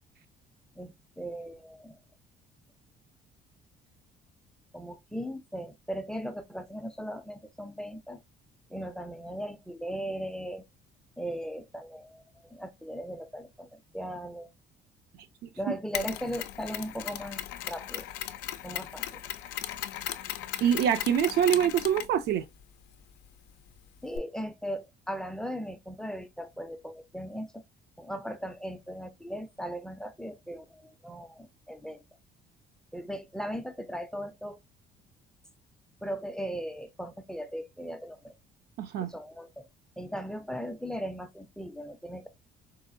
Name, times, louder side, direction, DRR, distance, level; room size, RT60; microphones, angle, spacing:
voice 1, 0.8-2.0 4.7-8.2 8.7-10.6 11.2-14.5 15.6-18.1 18.6-19.2 24.0-27.6 28.0-32.0 32.9-34.6 36.0-38.3 39.1-39.7 40.0-42.3, equal, 5° left, 0.4 m, -38 dB
Mechanisms, 15.9-24.2, left 12 dB, 85° left, 0.4 m, -38 dB
voice 2, 20.6-22.4 38.8-39.1, right 9 dB, 75° right, 0.5 m, -25 dB
4.0 x 2.2 x 2.5 m
cardioid pair, 110°, 17 cm